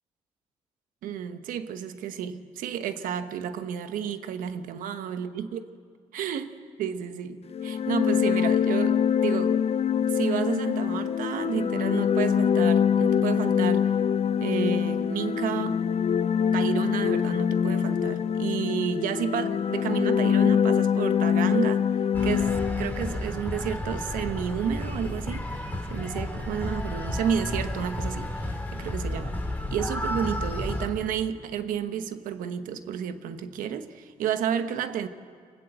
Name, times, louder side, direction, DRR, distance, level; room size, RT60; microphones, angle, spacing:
voice 1, 1.0-5.7 6.1-6.5 6.8-9.6 10.1-13.9 14.4-15.8 16.5-21.9 22.2-25.5 25.9-29.4 29.7-35.1, right 8 dB, 85° right, 1.1 m, -31 dB
sound 1, 7.5-23.2, left 8 dB, 50° left, 0.5 m, -24 dB
sound 2, 22.1-30.9, left 1 dB, 15° left, 5.1 m, -32 dB
25.5 x 20.5 x 7.9 m
supercardioid pair, 55°, 14 cm